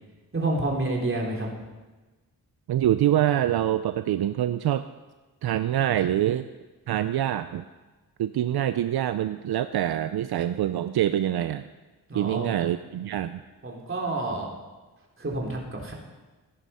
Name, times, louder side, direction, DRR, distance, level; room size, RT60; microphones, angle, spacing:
voice 1, 0.3-1.5 12.1-12.5 13.6-14.5 15.2-15.9, right 2 dB, 35° right, -1 dB, 3.4 m, -29 dB
voice 2, 2.7-4.9 5.4-6.4 6.9-7.6 8.2-11.6 12.1-13.4, right 12 dB, 75° right, 11 dB, 0.6 m, -25 dB
15.0 x 10.5 x 5.5 m, 1.2 s
cardioid pair, 75°, 38 cm